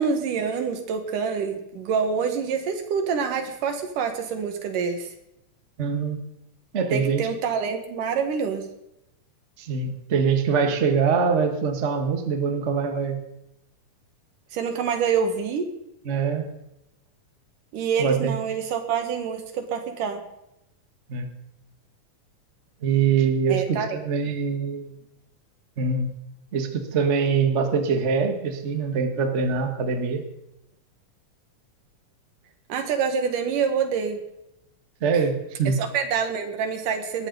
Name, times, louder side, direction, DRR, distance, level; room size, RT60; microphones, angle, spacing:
voice 1, 0.0-5.1 6.9-8.7 14.5-15.7 17.7-20.2 23.5-24.0 32.7-34.2 35.7-37.3, right 6 dB, 90° right, 6 dB, 3.2 m, -26 dB
voice 2, 5.8-6.2 6.7-7.3 9.6-13.2 16.0-16.5 18.0-18.4 21.1-21.3 22.8-24.9 25.8-26.1 26.5-30.2 35.0-35.8, right 5 dB, 40° right, 5 dB, 0.9 m, -24 dB
19.5 x 13.5 x 4.0 m, 0.83 s
omnidirectional pair, 3.6 m